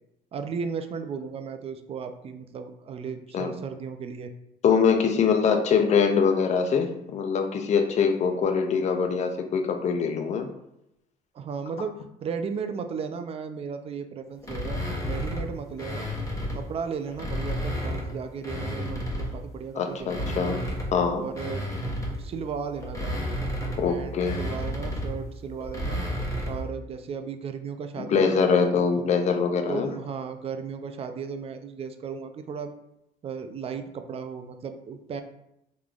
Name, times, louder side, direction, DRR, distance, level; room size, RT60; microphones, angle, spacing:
voice 1, 0.3-4.3 5.1-5.2 11.3-14.8 15.1-16.1 16.5-20.6 21.1-21.7 22.2-23.4 23.8-26.0 26.5-28.4 29.0-29.1 29.7-32.7 33.2-35.2, right 6 dB, 35° right, 7 dB, 0.4 m, -35 dB
voice 2, 4.6-10.5 19.8-20.6 20.9-21.2 23.8-24.4 28.0-29.9, left 6 dB, 45° left, 5 dB, 0.5 m, -23 dB
sound 1, 14.4-16.7 17.1-19.5 19.9-26.7, equal, 20° left, 0.8 m, -32 dB
3.7 x 3.1 x 2.4 m, 0.84 s
cardioid pair, 110°, 17 cm